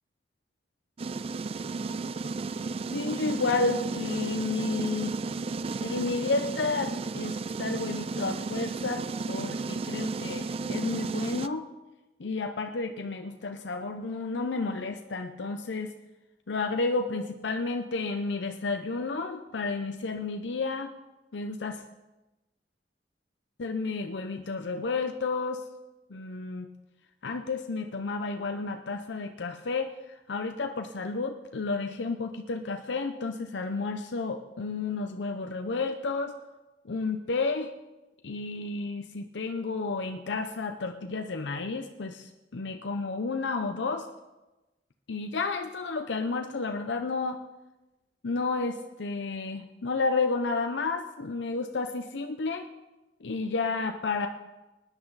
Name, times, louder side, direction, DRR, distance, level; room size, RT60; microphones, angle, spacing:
sound 1, 1.0-11.5, right 4 dB, 35° right, 0.3 m, -33 dB
voice 1, 2.9-5.2 5.8-11.7 12.2-15.9 16.5-20.9 21.3-21.8 23.6-25.6 26.1-26.7 27.2-36.3 36.8-37.7 38.2-44.1 45.1-47.4 48.2-52.7 53.2-54.3, left 3 dB, 85° left, 5 dB, 0.7 m, -31 dB
19.5 x 10.0 x 4.0 m, 1.1 s
head